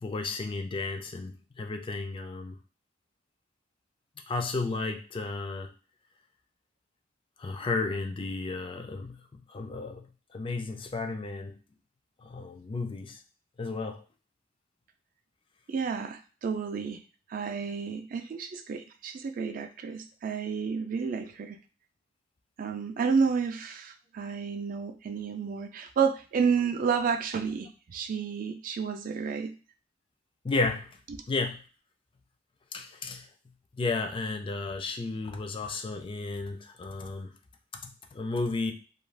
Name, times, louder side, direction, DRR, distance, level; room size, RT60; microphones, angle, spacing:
voice 1, 0.0-2.6 4.3-5.7 7.4-9.2 9.5-10.1 10.3-11.5 12.2-13.2 13.6-14.0 30.4-30.9 31.3-31.6 32.7-33.3 33.8-37.4 38.1-38.7, left 3 dB, 30° left, 0.3 m, -33 dB
voice 2, 15.7-17.0 17.3-21.6 22.6-29.5, right 6 dB, 50° right, 0.3 m, -30 dB
2.4 x 2.2 x 3.2 m
head